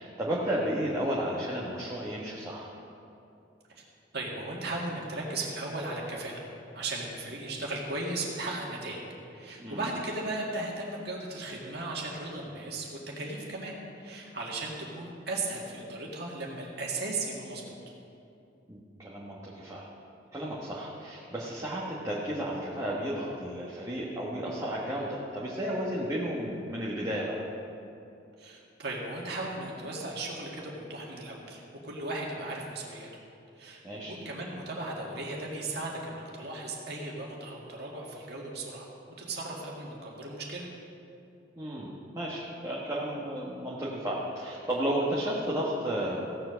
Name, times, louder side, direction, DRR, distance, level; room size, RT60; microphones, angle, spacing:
voice 1, 0.0-2.7 9.6-9.8 18.7-19.9 20.3-27.4 33.8-34.1 41.6-46.4, equal, 20° right, -6 dB, 1.4 m, -33 dB
voice 2, 4.1-6.4 6.7-9.0 9.3-17.8 28.4-33.1 33.6-38.9 39.2-40.7, right 2 dB, 60° right, -3 dB, 2.0 m, -36 dB
16.0 x 7.5 x 6.4 m, 2.7 s
head